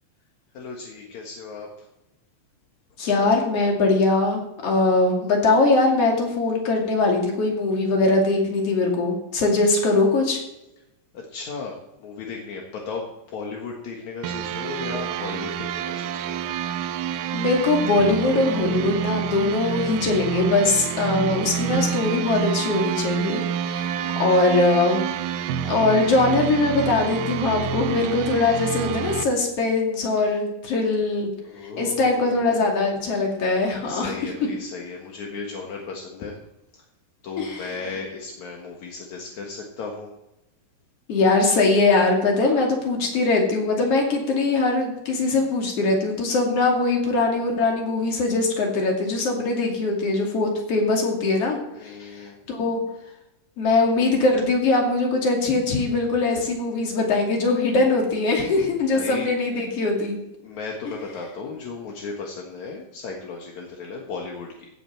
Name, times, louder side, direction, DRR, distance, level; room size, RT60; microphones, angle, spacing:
voice 1, 0.5-1.9 11.1-16.4 24.0-24.3 31.5-32.6 33.8-36.4 36.7-36.8 37.2-40.1 42.4-42.7 51.7-52.4 58.9-59.3 60.4-64.7, left 4 dB, 60° left, 0 dB, 2.0 m, -35 dB
voice 2, 3.0-10.4 17.3-25.0 25.6-31.3 31.8-34.1 37.4-37.7 41.1-51.6 52.1-52.2 52.5-52.8 53.6-60.2, left 3 dB, 40° left, 0 dB, 2.8 m, -21 dB
sound 1, 14.2-29.2, right 9 dB, 80° right, 2.2 m, -28 dB
16.0 x 9.1 x 4.5 m, 0.89 s
omnidirectional pair, 5.3 m